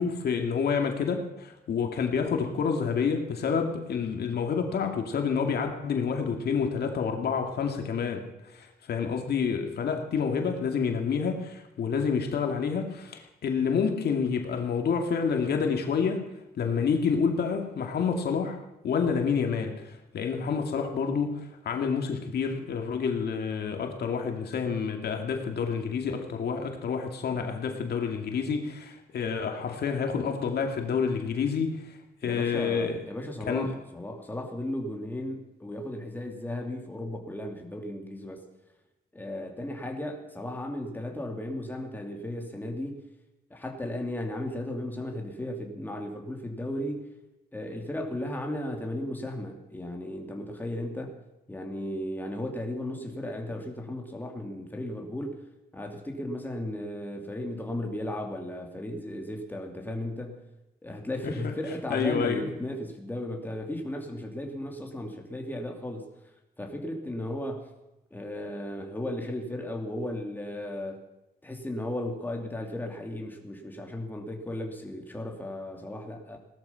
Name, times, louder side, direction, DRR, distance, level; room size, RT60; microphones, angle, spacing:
voice 1, 0.0-8.3 8.5-16.3 16.5-18.6 18.8-32.0 32.2-33.0 33.5-33.7 61.2-61.5 61.9-62.5, left 6 dB, 70° left, 4 dB, 2.3 m, -28 dB
voice 2, 32.2-38.4 39.1-43.0 43.5-47.1 47.5-51.2 51.5-55.4 55.7-60.4 60.8-66.1 66.6-67.7 68.1-71.0 71.4-76.4, left 1 dB, 10° left, 2 dB, 2.6 m, -35 dB
18.0 x 13.0 x 5.7 m, 0.97 s
cardioid pair, 115°, 17 cm